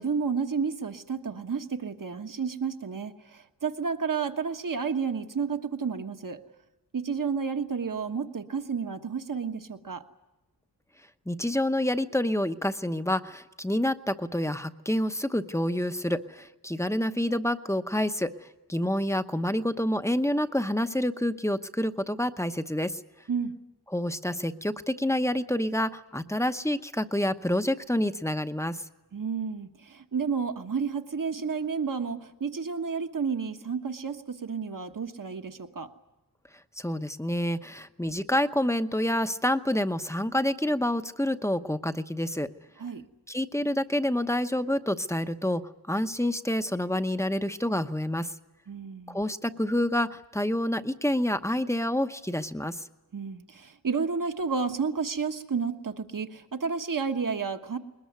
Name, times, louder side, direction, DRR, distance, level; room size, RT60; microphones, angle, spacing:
voice 1, 0.0-6.4 6.9-10.0 23.3-23.5 29.1-35.9 42.8-43.0 48.7-49.2 53.1-57.8, right 5 dB, 55° right, 7 dB, 1.4 m, -31 dB
voice 2, 11.3-18.3 18.7-23.0 23.9-28.8 36.8-42.5 43.3-48.3 49.1-52.8, left 1 dB, 5° left, 9 dB, 0.9 m, -28 dB
21.5 x 20.0 x 9.5 m, 1.0 s
wide cardioid pair, 85°, 39 cm